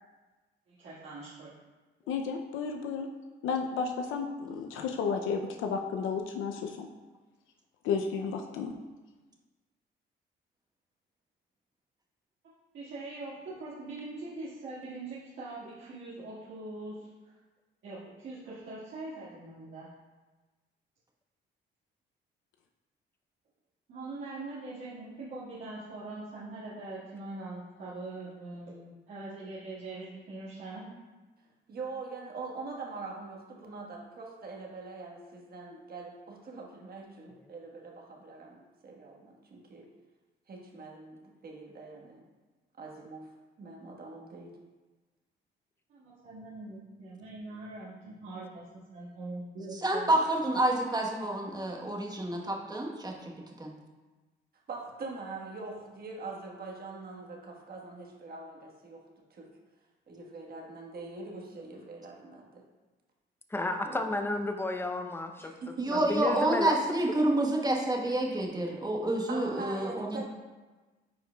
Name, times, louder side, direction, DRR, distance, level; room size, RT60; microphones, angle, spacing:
voice 1, 0.7-1.6 12.7-17.3 17.8-19.9 23.9-30.9 45.9-48.6 48.9-50.1, right 2 dB, 70° right, -12 dB, 1.8 m, -42 dB
voice 2, 2.1-3.1 3.4-6.9 7.8-8.7, left 5 dB, 90° left, 4 dB, 0.5 m, -32 dB
voice 3, 31.7-39.9 40.5-42.3 42.8-43.3 43.6-44.5 54.7-59.0 59.3-59.5 60.1-62.6 65.4-66.0 69.3-70.2, right 3 dB, 50° right, -1 dB, 1.4 m, -43 dB
voice 4, 49.7-53.3 53.6-53.7 65.8-70.2, right 1 dB, 20° right, 0 dB, 1.1 m, -28 dB
voice 5, 63.5-65.5 65.9-66.8, left 2 dB, 10° left, 6 dB, 0.6 m, -32 dB
9.3 x 4.8 x 2.3 m, 1.2 s
cardioid pair, 90°, 20 cm